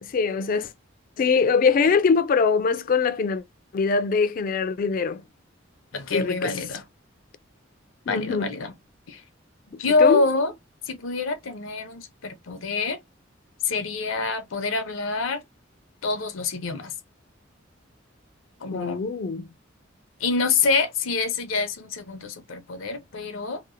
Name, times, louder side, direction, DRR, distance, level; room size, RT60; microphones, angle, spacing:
voice 1, 0.0-0.7 1.2-3.4 3.7-5.2 6.1-6.6 8.1-8.5 9.7-10.3 18.7-19.5, left 5 dB, 45° left, 0.3 m, -23 dB
voice 2, 5.9-6.8 8.1-8.7 9.1-9.2 9.8-10.5 10.9-13.0 13.6-15.4 16.0-16.9 18.6-19.0 20.2-23.6, left 4 dB, 85° left, 0.6 m, -26 dB
2.8 x 2.0 x 2.4 m
head